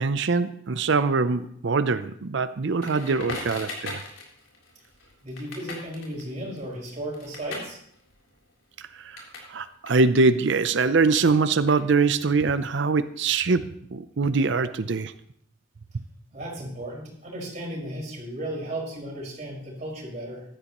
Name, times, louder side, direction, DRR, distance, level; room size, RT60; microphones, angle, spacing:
voice 1, 0.0-4.0 8.8-15.1 15.9-16.0, right 4 dB, 65° right, 13 dB, 0.6 m, -23 dB
Crackle, 2.8-9.5 9.8-12.2, left 3 dB, 80° left, 3.6 m, -40 dB
voice 2, 5.2-7.8 16.3-20.4, right 1 dB, 35° right, -4 dB, 5.4 m, -35 dB
15.0 x 12.5 x 3.0 m, 0.67 s
head